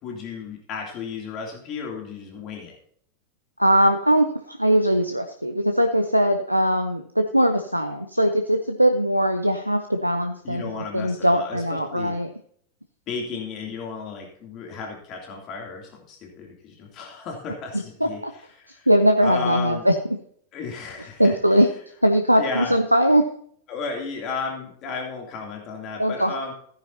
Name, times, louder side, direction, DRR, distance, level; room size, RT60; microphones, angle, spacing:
voice 1, 0.0-2.7 10.4-12.1 13.1-18.2 18.6-18.9 19.2-19.8 20.5-21.3 22.4-22.8 23.7-26.5, left 4 dB, 35° left, 0 dB, 2.8 m, -33 dB
voice 2, 3.6-12.3 18.0-18.3 18.7-19.9 21.2-21.7 22.0-23.2 26.0-26.3, equal, 90° right, 7 dB, 0.7 m, -20 dB
15.5 x 9.9 x 2.8 m, 0.63 s
figure-of-eight pair, 90°, 0 cm